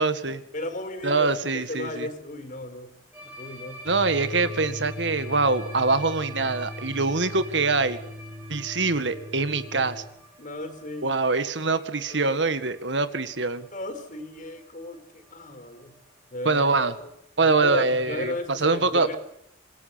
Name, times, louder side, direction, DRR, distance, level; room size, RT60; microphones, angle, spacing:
voice 1, 0.0-0.4 1.0-2.1 3.9-8.0 8.5-10.0 11.0-13.7 16.5-16.9 17.4-18.3 18.6-19.1, right 3 dB, 80° right, 11 dB, 1.9 m, -24 dB
voice 2, 0.5-2.9 3.2-3.9 10.4-11.2 11.7-12.6 13.7-16.0 16.3-16.7 17.0-17.1 17.4-19.2, left 1 dB, 45° left, 9 dB, 4.7 m, -35 dB
sound 1, 3.1-15.0 15.3-15.5 15.8-16.0 16.3-16.4 16.7-16.8 17.9-18.0, right 1 dB, 10° right, 5.3 m, -47 dB
sound 2, 3.8-10.0, left 1 dB, 30° right, 5.1 m, -39 dB
27.0 x 21.0 x 8.6 m, 0.73 s
head